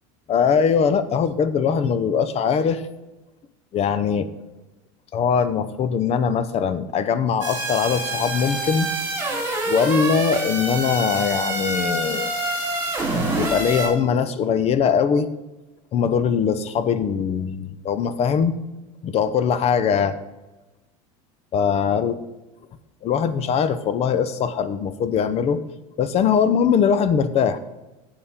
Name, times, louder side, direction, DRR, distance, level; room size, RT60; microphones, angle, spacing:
voice 1, 0.3-2.8 3.7-4.3 5.1-8.9 9.3-12.3 13.4-15.3 15.9-18.5 19.0-20.2 21.5-22.1 23.0-25.6 26.0-27.6, left 7 dB, 40° left, 13 dB, 0.7 m, -21 dB
sound 1, 7.4-13.9, right 2 dB, 15° right, 3.6 m, -26 dB
11.0 x 7.2 x 3.7 m, 1.1 s
supercardioid pair, 110°, 17 cm